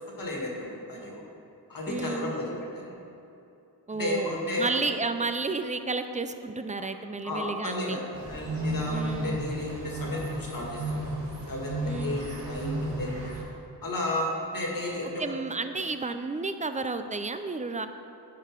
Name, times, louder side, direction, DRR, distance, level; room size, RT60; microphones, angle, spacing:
voice 1, 0.2-1.2 1.7-3.0 3.9-4.8 6.8-6.9 7.2-11.0 11.5-13.3 13.8-15.3, left 1 dB, 50° left, -2 dB, 1.7 m, -33 dB
voice 2, 1.9-2.3 3.9-8.0 8.9-9.4 11.8-12.2 15.2-17.9, right 3 dB, 20° right, 9 dB, 0.3 m, -32 dB
sound 1, 8.1-13.4, right 1 dB, 85° right, 1.7 m, -33 dB
10.0 x 4.9 x 4.5 m, 2.9 s
wide cardioid pair, 95°, 42 cm